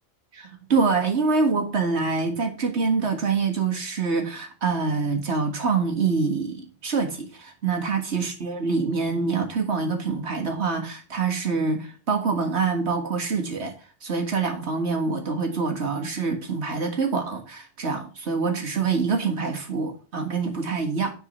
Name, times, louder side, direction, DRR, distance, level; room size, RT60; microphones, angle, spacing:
voice 1, 0.3-13.7 14.0-21.1, right 4 dB, 75° right, 2.0 m, -25 dB
9.9 x 4.6 x 5.4 m
omnidirectional pair, 1.1 m